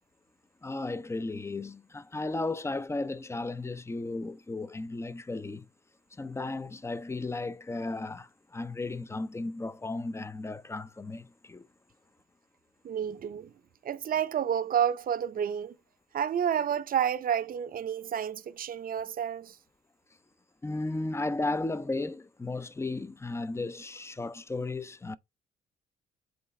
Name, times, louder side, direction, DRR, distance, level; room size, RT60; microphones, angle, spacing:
voice 1, 0.6-5.7 6.2-11.7 20.6-25.2, left 2 dB, 15° left, 0.4 m, -35 dB
voice 2, 12.8-13.5 13.8-15.7 16.1-19.6, right 9 dB, 45° right, 0.6 m, -30 dB
7.8 x 3.9 x 3.1 m
cardioid pair, 90°, 20 cm